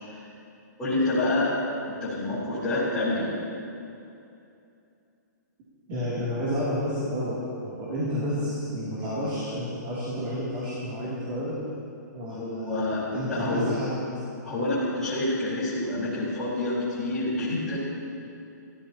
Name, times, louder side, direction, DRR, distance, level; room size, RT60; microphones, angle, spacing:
voice 1, 0.8-1.6 1.9-3.3 12.3-13.6 14.4-17.8, left 2 dB, 5° left, -13 dB, 4.0 m, -28 dB
voice 2, 5.9-11.5 12.1-12.8 13.1-14.0, equal, 25° right, -8 dB, 3.1 m, -30 dB
27.5 x 13.5 x 3.0 m, 2.6 s
hypercardioid pair, 175°, 10 cm